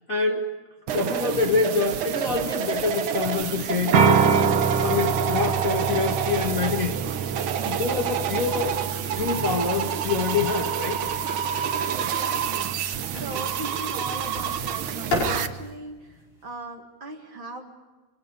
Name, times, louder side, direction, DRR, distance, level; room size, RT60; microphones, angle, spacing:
voice 1, 0.1-0.6 0.9-4.2 4.8-7.0 7.6-8.7 9.2-11.0, left 4 dB, 30° left, -1 dB, 1.8 m, -26 dB
sound 1, 0.9-15.5, right 8 dB, 80° right, 1.1 m, -28 dB
sound 2, 3.9-15.7, right 6 dB, 55° right, 2.2 m, -28 dB
sound 3, 10.2-16.6, left 2 dB, 65° left, 7.1 m, -36 dB
voice 2, 11.9-17.7, right 2 dB, 40° right, 2 dB, 2.5 m, -39 dB
29.0 x 26.0 x 5.3 m, 1.2 s
omnidirectional pair, 3.7 m